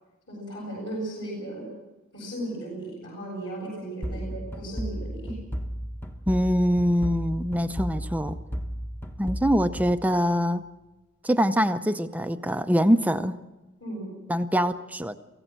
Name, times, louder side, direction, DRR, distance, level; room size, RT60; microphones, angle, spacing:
voice 1, 0.3-1.7 2.1-5.3 13.8-14.1, right 1 dB, 60° left, -3 dB, 7.8 m, -35 dB
sound 1, 4.0-10.6, equal, 10° left, 1.1 m, -34 dB
voice 2, 6.3-8.4 9.2-10.6 11.2-13.4 14.3-15.1, equal, 5° right, 9 dB, 0.6 m, -24 dB
24.0 x 16.0 x 7.6 m, 1.1 s
head